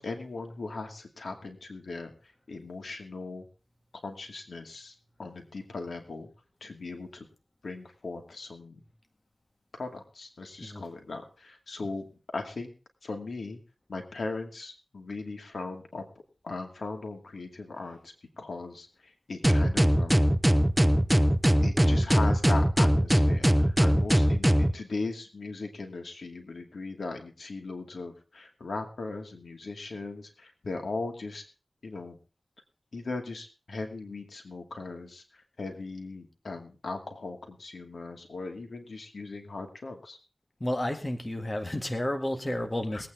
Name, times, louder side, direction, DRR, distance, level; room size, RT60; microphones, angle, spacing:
voice 1, 0.0-2.1 2.5-3.4 4.0-4.9 5.2-6.3 6.6-7.3 7.6-8.8 9.8-12.1 12.3-12.7 13.0-13.6 13.9-16.0 16.4-18.9 19.3-20.2 21.6-31.4 31.8-32.2 32.9-35.2 35.6-40.2 42.9-43.0, left 3 dB, 85° left, 4 dB, 2.4 m, -38 dB
sound 1, 19.4-24.7, equal, 5° right, 0.9 m, -21 dB
voice 2, 40.6-43.1, left 1 dB, 25° left, 5 dB, 1.7 m, -31 dB
21.5 x 8.8 x 3.7 m, 0.34 s
wide cardioid pair, 80°, 0 cm